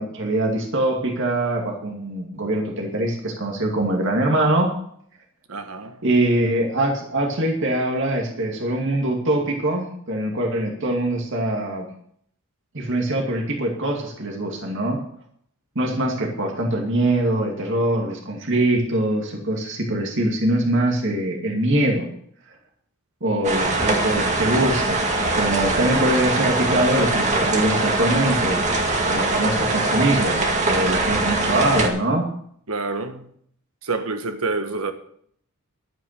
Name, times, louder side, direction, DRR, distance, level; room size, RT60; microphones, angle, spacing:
voice 1, 0.0-4.7 6.0-11.9 12.7-15.0 15.7-22.1 23.2-28.6 29.1-32.2, right 1 dB, 55° right, 2.4 m, -23 dB
voice 2, 5.5-6.0 32.7-33.3 33.8-34.9, right 3 dB, 75° right, 1.5 m, -27 dB
sound 1, 23.4-31.9, right 2 dB, 35° right, 2.1 m, -22 dB
12.0 x 9.1 x 6.7 m
head